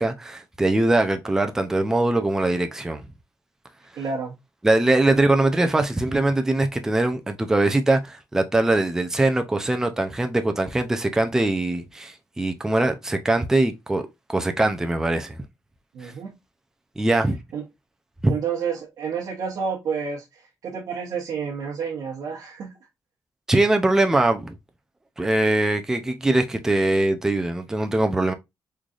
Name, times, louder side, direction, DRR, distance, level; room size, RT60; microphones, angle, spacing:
voice 1, 0.0-3.0 4.6-15.4 16.0-16.1 17.0-17.4 18.2-18.3 23.5-24.5 25.2-28.3, right 2 dB, 10° right, 0.4 m, -22 dB
voice 2, 3.9-4.4 5.1-5.2 15.9-16.3 17.5-17.6 18.3-22.7, right 6 dB, 70° right, 0.9 m, -30 dB
3.8 x 3.2 x 2.4 m
wide cardioid pair, 160°, 7 cm